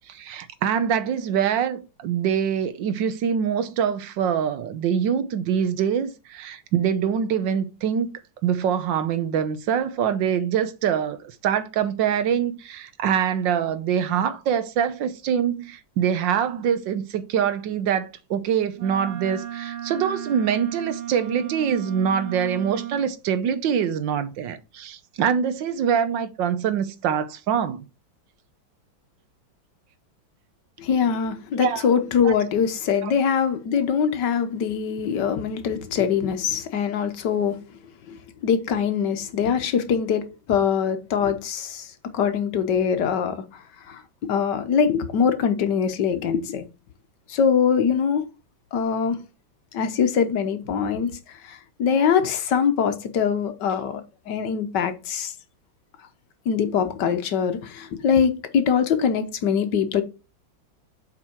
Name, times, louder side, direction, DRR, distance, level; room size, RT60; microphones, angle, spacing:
voice 1, 0.1-8.1 8.4-27.9 31.6-31.9 32.2-32.3 33.0-33.1, right 8 dB, 75° right, 1.4 m, -24 dB
Wind instrument woodwind instrument, 18.7-23.1, right 11 dB, 90° right, 2.2 m, -35 dB
voice 2, 30.8-37.6 38.1-46.7 47.3-48.2 48.7-49.2 49.7-55.3 56.4-60.0, left 7 dB, 65° left, 1.5 m, -23 dB
7.7 x 4.6 x 4.4 m
omnidirectional pair, 2.1 m